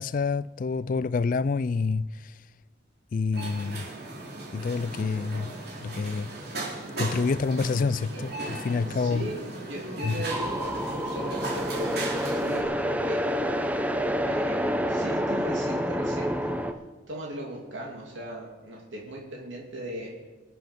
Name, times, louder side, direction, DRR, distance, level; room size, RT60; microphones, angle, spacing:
voice 1, 0.0-2.1 3.1-3.9 4.5-5.5 5.8-6.3 7.0-9.3 10.0-10.2, left 4 dB, 45° left, 0.3 m, -27 dB
sound 1, 3.3-12.6, right 2 dB, 55° right, 3.6 m, -37 dB
voice 2, 8.9-13.7 14.2-16.5 17.1-20.1, right 1 dB, 80° right, 2.8 m, -38 dB
sound 2, 10.3-16.7, equal, 10° right, 0.6 m, -28 dB
23.0 x 7.8 x 5.2 m
head